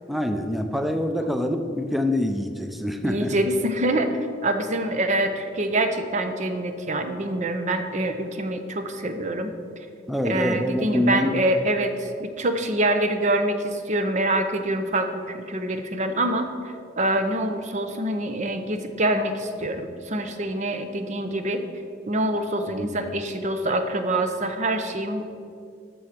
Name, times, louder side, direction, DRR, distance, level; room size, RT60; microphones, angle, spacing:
voice 1, 0.1-3.3 10.1-11.3 22.7-23.0, left 1 dB, ahead, 6 dB, 0.5 m, -25 dB
voice 2, 3.0-9.5 10.2-16.5 17.0-21.6 22.1-25.2, right 1 dB, 40° right, 7 dB, 0.7 m, -25 dB
8.1 x 6.3 x 5.9 m, 2.4 s
head